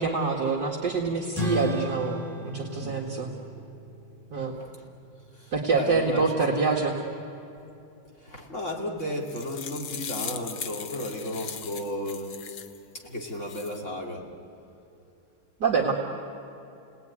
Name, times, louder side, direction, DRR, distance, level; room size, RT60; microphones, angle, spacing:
voice 1, 0.0-2.2 2.4-3.3 4.3-4.5 5.5-6.9 15.6-15.9, right 4 dB, 50° right, -3 dB, 2.4 m, -26 dB
sound 1, 1.3-6.2, left 1 dB, 10° left, 2.8 m, -36 dB
voice 2, 5.3-6.6 8.2-12.4 12.9-14.3, left 1 dB, 35° left, -1 dB, 3.0 m, -34 dB
sound 2, 9.0-12.8 13.3-13.8, left 7 dB, 70° left, 1.8 m, -38 dB
29.5 x 19.5 x 9.7 m, 2.8 s
omnidirectional pair, 2.3 m